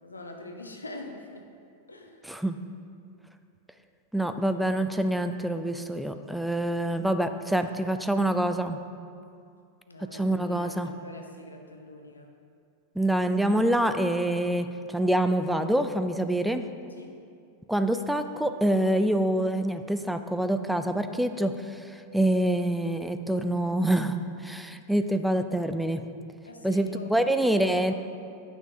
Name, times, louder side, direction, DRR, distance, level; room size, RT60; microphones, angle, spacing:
voice 1, 0.0-1.5 1.9-2.2 9.9-12.3 16.3-16.6 17.0-17.2 26.4-28.0, left 1 dB, 80° left, 3 dB, 0.8 m, -43 dB
voice 2, 2.2-2.6 4.1-8.8 10.1-10.9 13.0-16.7 17.7-26.0 26.6-28.0, right 1 dB, ahead, 8 dB, 0.4 m, -26 dB
9.1 x 6.1 x 5.0 m, 2.4 s
figure-of-eight pair, 90°, 0 cm